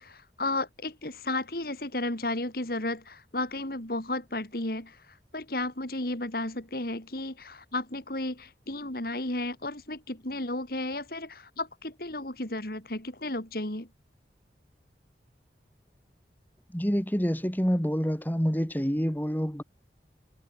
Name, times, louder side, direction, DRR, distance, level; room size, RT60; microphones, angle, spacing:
voice 1, 0.0-5.0 5.3-13.9, left 2 dB, 55° left, 3.4 m, -33 dB
voice 2, 16.7-19.6, equal, 10° left, 3.5 m, -27 dB
head